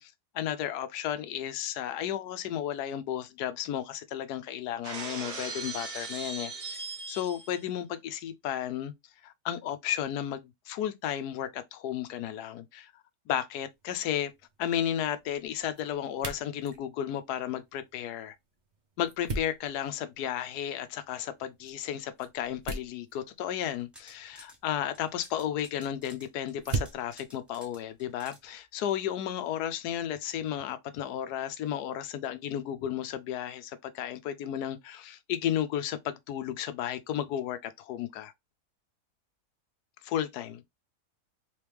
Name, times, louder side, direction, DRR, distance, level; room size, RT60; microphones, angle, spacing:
voice 1, 0.0-6.8 7.1-8.9 9.2-12.9 13.3-14.3 14.6-18.3 19.0-38.3 40.0-40.6, left 10 dB, 85° left, 1.1 m, -33 dB
Shatter, 4.8-7.6, right 3 dB, 75° right, 1.7 m, -38 dB
Flashlight On Off, 13.7-28.6, right 3 dB, 35° right, 0.8 m, -43 dB
sound 1, 23.7-24.6 24.9-28.4, equal, ahead, 0.8 m, -53 dB
3.6 x 3.1 x 3.3 m
omnidirectional pair, 1.7 m